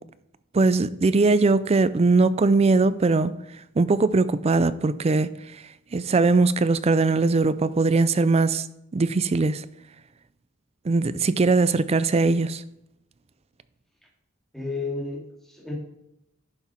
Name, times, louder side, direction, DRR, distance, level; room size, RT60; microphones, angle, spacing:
voice 1, 0.5-3.3 3.8-5.3 5.9-8.7 8.9-9.6 10.9-12.6, right 3 dB, 30° right, 0.4 m, -20 dB
voice 2, 14.5-15.8, left 3 dB, ahead, 2.1 m, -32 dB
11.0 x 6.0 x 4.4 m
head